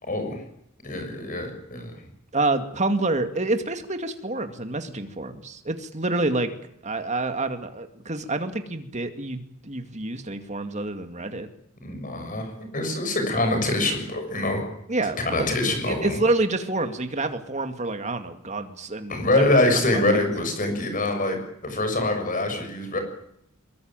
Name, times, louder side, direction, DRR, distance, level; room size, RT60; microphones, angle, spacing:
voice 1, 0.0-0.4 0.8-1.9 11.8-14.6 15.2-16.2 19.1-23.0, left 2 dB, 40° left, 6 dB, 7.0 m, -24 dB
voice 2, 2.3-6.5 6.8-11.5 14.9-19.4 19.9-20.2, right 2 dB, 35° right, 7 dB, 2.3 m, -28 dB
23.0 x 22.5 x 9.1 m, 0.76 s
head